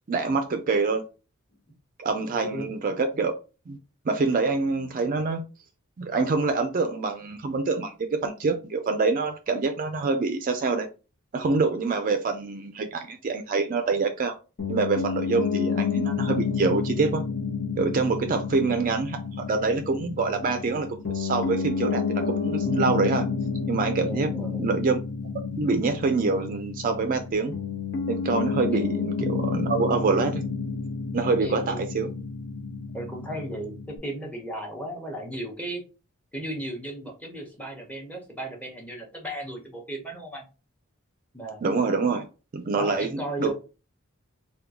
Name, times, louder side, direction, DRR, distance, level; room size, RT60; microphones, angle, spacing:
voice 1, 0.1-1.0 2.0-3.3 3.7-3.8 4.1-5.4 6.0-7.9 8.2-10.9 11.3-14.3 14.7-17.2 17.8-19.2 19.5-20.9 21.1-23.2 23.7-24.3 24.6-25.0 25.5-27.5 28.1-30.4 31.1-32.1 41.6-42.3 42.5-43.5, right 4 dB, 40° right, 0.4 m, -25 dB
voice 2, 2.3-2.7 24.1-24.6 28.7-28.8 31.4-31.8 32.9-35.8 36.3-40.5 41.3-41.6 42.7-43.5, right 1 dB, 5° left, 0.8 m, -35 dB
Piano, 14.6-34.0, left 5 dB, 55° left, 0.8 m, -30 dB
3.6 x 2.2 x 2.8 m
head